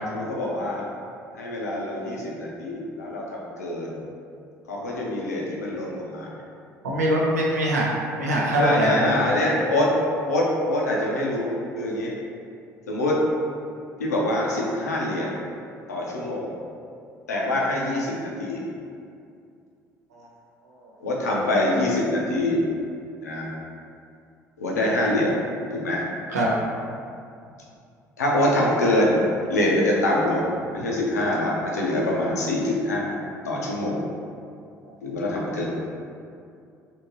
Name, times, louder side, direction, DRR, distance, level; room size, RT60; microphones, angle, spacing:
voice 1, 0.1-0.9 1.4-4.0 4.7-6.3 8.6-9.9 10.3-12.1 12.9-13.2 14.0-15.4 15.9-16.5 17.3-18.6 21.0-22.6 23.2-23.5 24.6-25.4 25.7-26.0 28.2-29.2 29.5-33.1 33.4-34.0 35.0-35.7, left 1 dB, 80° left, -3 dB, 0.5 m, -25 dB
voice 2, 6.8-7.8 8.1-9.2 20.1-20.3 20.6-20.9 26.3-26.5 34.8-34.9, right 1 dB, 80° right, -4 dB, 0.5 m, -23 dB
2.8 x 2.6 x 2.8 m, 2.4 s
figure-of-eight pair, 55°, 9 cm